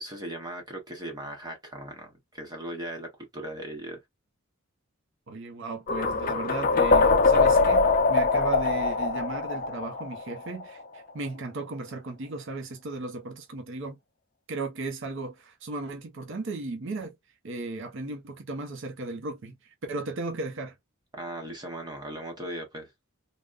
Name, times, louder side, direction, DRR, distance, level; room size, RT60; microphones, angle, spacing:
voice 1, 0.0-4.0 21.1-22.9, right 1 dB, 20° right, 0.8 m, -38 dB
voice 2, 5.3-14.0 14.5-17.1 17.4-20.7, right 3 dB, 60° right, 0.6 m, -35 dB
sound 1, 5.9-10.8, left 4 dB, 40° left, 0.4 m, -23 dB
3.5 x 2.1 x 2.4 m
head